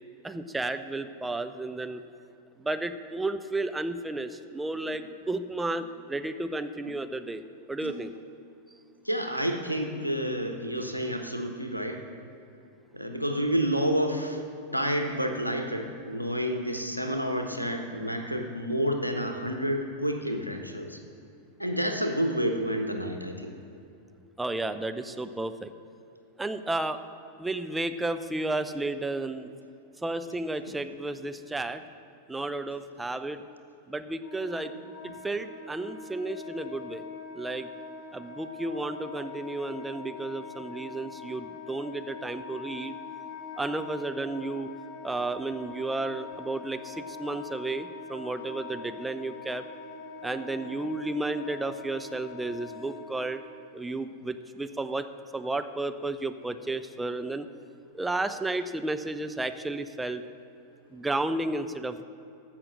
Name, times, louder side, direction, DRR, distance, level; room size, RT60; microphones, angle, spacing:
voice 1, 0.2-2.0 2.6-7.4 7.7-8.1 24.4-25.7 26.4-27.0 27.4-29.5 30.0-31.8 32.3-33.4 33.9-34.7 35.0-37.0 37.3-37.7 38.1-43.0 43.6-44.7 45.0-49.7 50.2-53.4 53.7-55.1 55.3-57.5 57.9-60.2 60.9-62.1, right 2 dB, 10° right, 9 dB, 0.5 m, -32 dB
sound 1, 3.1-3.5 4.2-4.3 4.9-6.2 6.6-7.4 7.8-8.2, right 1 dB, 85° right, 1.1 m, -48 dB
voice 2, 9.0-12.0 12.9-14.4 14.7-21.0 21.6-23.5, equal, 90° left, 5 dB, 1.0 m, -29 dB
Wind instrument woodwind instrument, 34.1-53.6, left 4 dB, 30° left, 1.7 m, -43 dB
14.5 x 5.9 x 6.4 m, 2.7 s
figure-of-eight pair, 90°, 0 cm